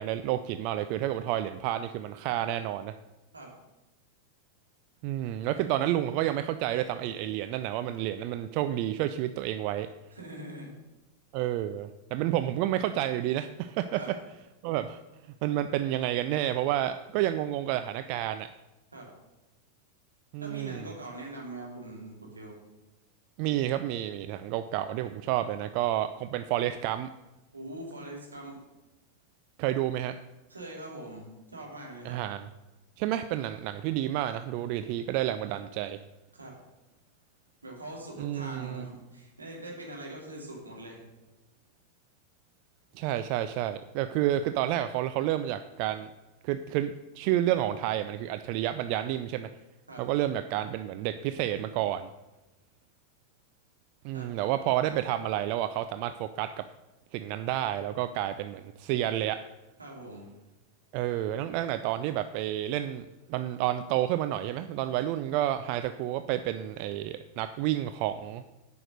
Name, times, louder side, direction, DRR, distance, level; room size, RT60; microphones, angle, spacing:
voice 1, 0.0-2.9 5.0-9.9 11.3-14.0 14.6-15.0 15.4-18.5 20.3-20.9 23.4-27.1 29.6-30.2 32.0-32.5 33.0-36.0 38.2-38.9 42.9-46.1 46.4-49.5 50.0-52.1 54.0-56.6 57.1-59.4 60.9-68.4, right 13 dB, 45° right, 10 dB, 0.4 m, -30 dB
voice 2, 10.1-10.7 13.9-14.1 18.9-19.1 20.4-22.6 27.5-28.6 30.5-32.2 36.3-36.5 37.6-41.0 49.9-50.0 54.1-54.3 59.8-60.3, right 1 dB, 80° right, -1 dB, 2.6 m, -42 dB
8.9 x 5.9 x 6.4 m, 1.0 s
figure-of-eight pair, 90°, 0 cm